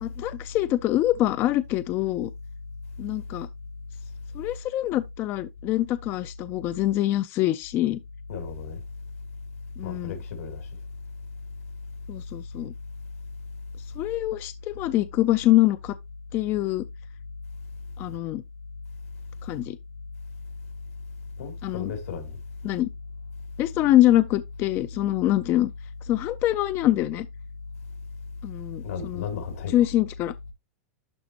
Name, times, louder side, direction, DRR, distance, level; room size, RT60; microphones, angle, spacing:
voice 1, 0.0-2.3 3.0-3.5 4.3-8.0 9.8-10.1 12.1-12.7 14.0-16.0 16.3-16.8 18.0-18.4 19.4-19.8 21.6-21.9 22.6-22.9 23.6-25.7 26.0-27.3 28.4-29.3 29.7-30.3, left 14 dB, 30° left, 0.4 m, -24 dB
voice 2, 8.3-8.8 9.8-10.7 21.4-22.4 28.8-29.9, left 6 dB, 90° left, 2.9 m, -34 dB
11.5 x 4.0 x 2.8 m
supercardioid pair, 155°, 8 cm